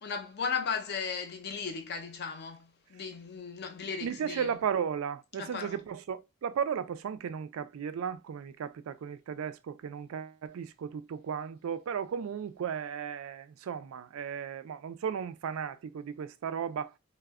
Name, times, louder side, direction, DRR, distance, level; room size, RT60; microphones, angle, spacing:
voice 1, 0.0-4.5 5.4-5.8, left 6 dB, 50° left, 0.5 m, -36 dB
voice 2, 4.0-16.9, right 7 dB, 85° right, 0.3 m, -35 dB
2.1 x 2.1 x 3.4 m
head